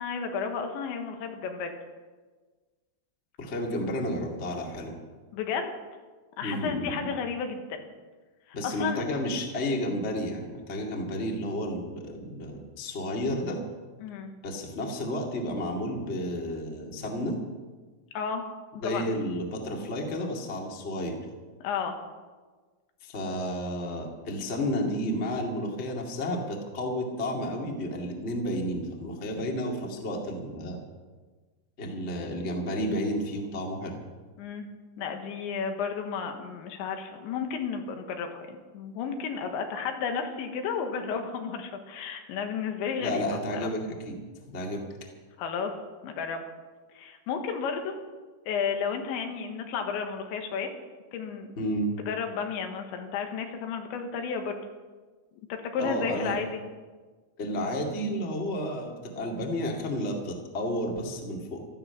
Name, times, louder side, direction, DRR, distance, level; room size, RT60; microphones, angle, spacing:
voice 1, 0.0-1.8 5.3-5.7 6.4-7.9 8.6-9.0 14.0-14.3 18.1-18.4 18.8-19.1 21.6-22.0 34.4-34.7 35.0-43.2 43.5-43.7 45.4-45.7 46.0-46.4 47.0-48.0 48.5-50.7 51.1-51.5 52.1-54.6 55.5-56.6, left 6 dB, 90° left, 5 dB, 3.7 m, -32 dB
voice 2, 3.4-5.0 6.4-7.1 8.5-13.6 14.4-17.4 18.8-21.2 23.0-30.8 31.8-33.9 43.0-44.2 44.5-44.9 51.6-51.9 55.8-56.4 57.4-61.6, equal, 35° left, 0 dB, 1.1 m, -31 dB
16.0 x 13.0 x 5.8 m, 1.4 s
omnidirectional pair, 5.1 m